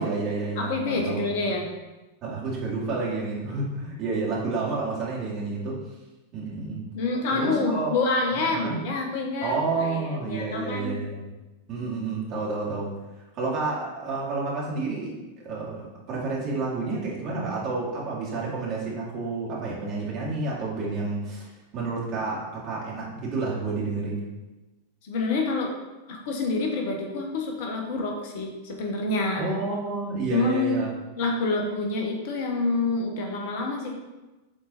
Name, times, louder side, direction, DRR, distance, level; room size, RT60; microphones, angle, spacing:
voice 1, 0.0-1.2 2.2-5.8 6.3-6.8 7.3-7.9 8.3-8.8 9.4-11.2 11.7-12.9 13.3-15.1 15.4-21.5 21.7-24.2 29.3-30.9, right 3 dB, 40° right, -5 dB, 2.3 m, -30 dB
voice 2, 0.6-1.7 6.9-11.0 25.0-25.7 26.1-29.4 30.3-30.9 31.2-33.9, left 3 dB, 50° left, 1 dB, 1.2 m, -27 dB
7.7 x 3.9 x 4.3 m, 1.1 s
figure-of-eight pair, 90°, 0 cm